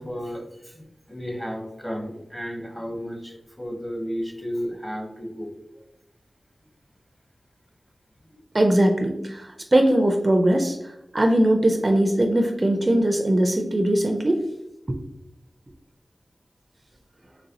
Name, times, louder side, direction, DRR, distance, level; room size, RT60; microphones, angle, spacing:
voice 1, 0.0-5.8 8.2-8.4, equal, 10° left, 3 dB, 0.9 m, -33 dB
voice 2, 8.5-14.4 14.9-15.0, right 1 dB, 40° right, 4 dB, 0.4 m, -20 dB
4.0 x 3.0 x 2.8 m, 0.87 s
cardioid pair, 50°, 0 cm